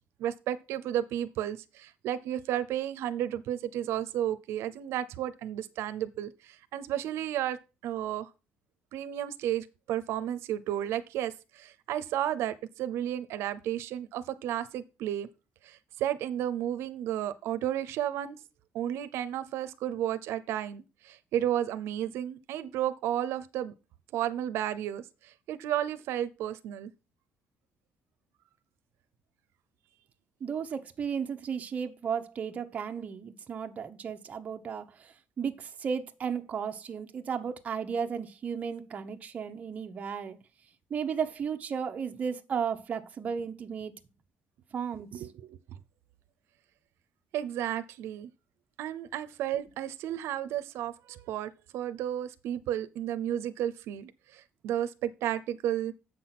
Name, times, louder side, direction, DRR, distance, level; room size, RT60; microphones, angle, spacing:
voice 1, 0.2-7.6 7.8-8.3 8.9-15.3 15.6-18.4 18.7-23.7 24.1-26.9 45.1-45.8 47.3-48.3 48.8-55.9, right 11 dB, 85° right, 0.7 m, -33 dB
voice 2, 30.4-40.4 40.9-43.9 44.7-45.2, right 7 dB, 35° right, 0.9 m, -34 dB
7.9 x 6.1 x 5.8 m
cardioid pair, 160°, 4 cm